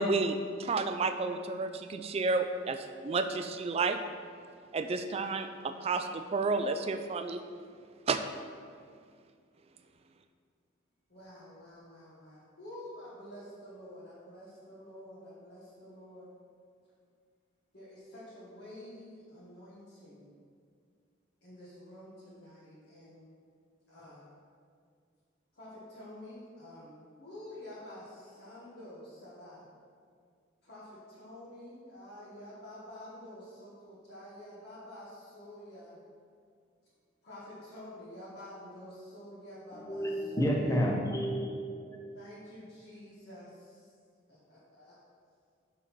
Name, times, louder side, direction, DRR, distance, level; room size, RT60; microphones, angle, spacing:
voice 1, 0.0-4.0 4.7-7.4 8.1-8.2, right 3 dB, 30° right, 8 dB, 0.3 m, -31 dB
voice 2, 11.1-16.3 17.7-20.3 21.4-23.2 23.9-24.2 25.5-29.7 30.6-36.0 37.2-40.7 42.1-43.9 44.3-45.0, left 1 dB, 50° left, -10 dB, 1.6 m, -49 dB
voice 3, 39.7-42.1, equal, 15° left, -1 dB, 0.7 m, -31 dB
6.2 x 4.0 x 5.9 m, 2.1 s
head